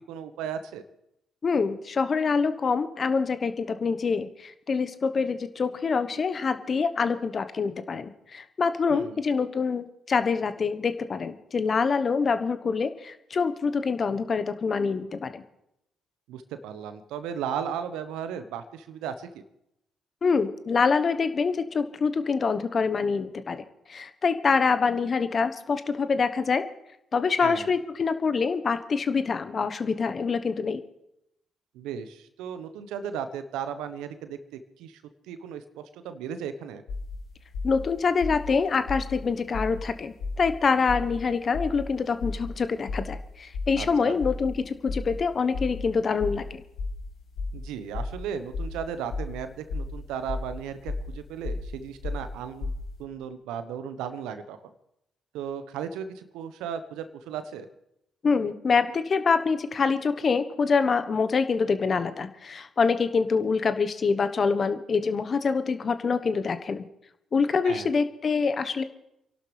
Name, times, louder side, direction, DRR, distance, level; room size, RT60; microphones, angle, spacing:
voice 1, 0.1-0.8 8.9-9.2 16.3-19.4 27.4-27.7 31.7-36.8 43.8-44.2 47.5-52.7 53.0-54.6 55.3-57.7 67.6-67.9, right 8 dB, 75° right, 10 dB, 1.1 m, -36 dB
voice 2, 1.4-15.4 20.2-23.6 23.9-26.6 27.1-30.8 37.6-46.6 58.2-66.9 67.3-68.8, left 5 dB, 45° left, 11 dB, 1.1 m, -25 dB
sound 1, 36.9-37.2 37.5-37.8 38.2-38.5 38.8-39.2 39.5-39.8 40.2-40.5 40.9-41.2 41.5-41.8 42.2-42.5 42.8-43.2 43.5-43.8 44.2-44.5 44.9-45.2 45.5-45.8 46.2-46.4 46.7-47.0 47.4-47.6 47.9-48.2 48.5-48.8 49.1-49.4 49.7-49.9 50.3-50.5 50.8-51.1 51.4-51.7 52.0-52.3 52.6-52.9, left 3 dB, 70° left, 3.7 m, -33 dB
28.5 x 12.0 x 3.4 m, 0.83 s
hypercardioid pair, 45°, 0 cm